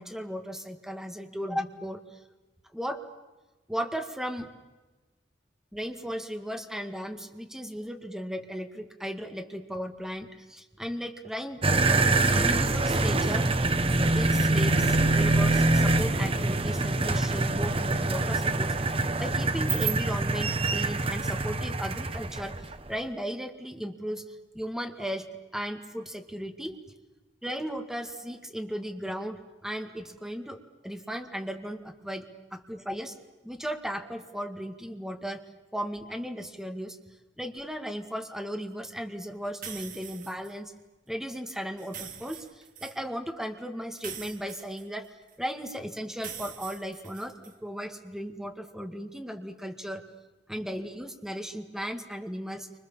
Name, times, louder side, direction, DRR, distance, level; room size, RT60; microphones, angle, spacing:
voice 1, 0.0-2.2 2.7-3.0 3.7-4.5 5.7-11.8 12.3-13.5 14.2-24.2 24.5-25.3 25.5-26.8 27.4-33.2 33.4-35.4 35.7-37.0 37.4-40.7 41.1-45.1 45.4-50.0 50.5-52.7, equal, 5° right, 5 dB, 1.9 m, -36 dB
sound 1, 11.6-22.9, right 2 dB, 30° right, 1.1 m, -25 dB
sound 2, 39.6-40.5 41.8-43.0 44.0-45.3 46.2-47.5, right 7 dB, 50° right, 2.1 m, -43 dB
29.5 x 25.5 x 7.4 m, 1.2 s
head